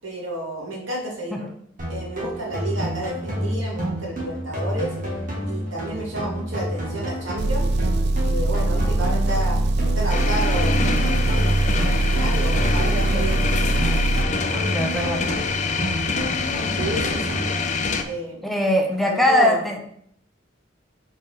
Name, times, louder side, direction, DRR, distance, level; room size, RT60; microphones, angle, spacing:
voice 1, 0.0-1.5 1.9-4.9 5.5-7.7 8.2-9.6 9.9-10.8 11.2-13.4 16.8-17.4 18.0-18.5 18.9-19.6, right 1 dB, 85° right, -3 dB, 2.4 m, -31 dB
sound 1, 1.8-17.8, equal, 45° right, 2.0 m, -29 dB
Engine, 7.4-14.3, right 2 dB, 60° right, 0.4 m, -22 dB
sound 2, 10.1-18.0, left 4 dB, 40° left, 0.6 m, -26 dB
voice 2, 14.6-15.5 18.4-19.8, left 1 dB, ahead, 1 dB, 0.8 m, -21 dB
4.8 x 4.7 x 5.5 m, 0.67 s
head